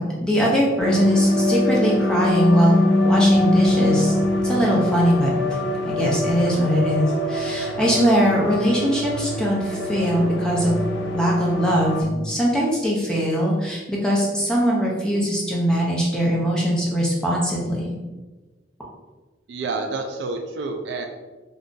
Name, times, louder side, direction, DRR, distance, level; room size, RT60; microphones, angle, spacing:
voice 1, 0.0-4.1 4.4-5.3 5.8-10.8 11.1-17.9, equal, 5° left, -4 dB, 0.5 m, -21 dB
sound 1, 0.8-12.0, left 1 dB, 65° left, 0.5 m, -23 dB
voice 2, 19.5-21.1, right 3 dB, 60° right, 4 dB, 0.3 m, -28 dB
2.5 x 2.3 x 3.7 m, 1.2 s
head